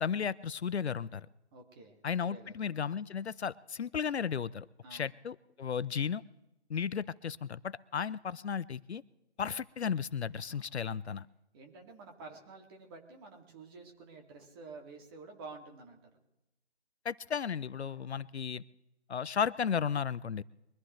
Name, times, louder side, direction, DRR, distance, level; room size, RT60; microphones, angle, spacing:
voice 1, 0.0-1.3 2.0-4.7 4.9-6.2 6.7-9.0 9.4-11.3 17.0-18.6 19.1-20.4, left 7 dB, 70° left, 18 dB, 0.6 m, -34 dB
voice 2, 1.5-2.0 2.2-2.5 4.8-5.1 10.5-10.7 11.5-16.0 17.8-18.1, right 3 dB, 20° right, 3 dB, 2.2 m, -50 dB
23.5 x 14.5 x 3.1 m, 0.91 s
figure-of-eight pair, 155°, 34 cm